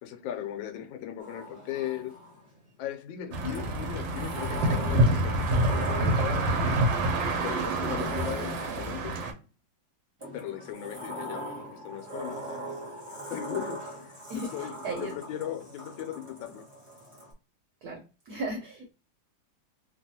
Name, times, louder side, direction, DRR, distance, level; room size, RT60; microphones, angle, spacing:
voice 1, 0.0-2.2 2.8-6.8 7.4-9.2 10.3-12.4 13.3-16.7, left 11 dB, 85° left, 1.3 m, -38 dB
Sliding door, 1.2-2.6 3.5-9.1 10.2-17.3, right 1 dB, 25° right, 0.8 m, -41 dB
sound 1, 3.3-9.3, right 1 dB, 90° right, 1.4 m, -27 dB
voice 2, 14.3-15.1 17.8-18.9, right 2 dB, 60° right, 1.2 m, -36 dB
3.2 x 2.3 x 2.7 m
omnidirectional pair, 2.0 m